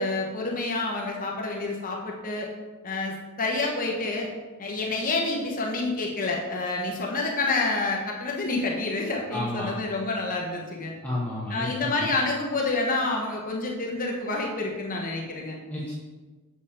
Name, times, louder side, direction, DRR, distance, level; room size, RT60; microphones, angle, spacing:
voice 1, 0.0-2.5 2.8-4.3 4.6-10.9 11.5-15.6, left 3 dB, 40° left, 0 dB, 1.0 m, -28 dB
voice 2, 9.3-9.7 11.0-12.1 15.7-15.9, left 1 dB, 5° left, -8 dB, 1.2 m, -31 dB
7.0 x 6.9 x 4.3 m, 1.3 s
head